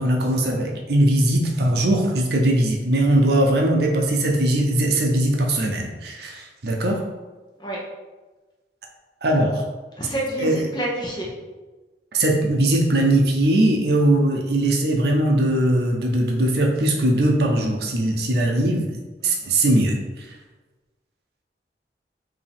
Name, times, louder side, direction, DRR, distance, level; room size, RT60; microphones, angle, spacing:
voice 1, 0.0-7.0 9.2-9.6 10.4-10.6 12.1-18.9 19.2-20.0, right 1 dB, 65° right, 1 dB, 0.7 m, -20 dB
voice 2, 10.0-11.3 19.2-19.5, right 1 dB, 25° left, -3 dB, 0.9 m, -29 dB
4.8 x 2.8 x 3.5 m, 1.2 s
head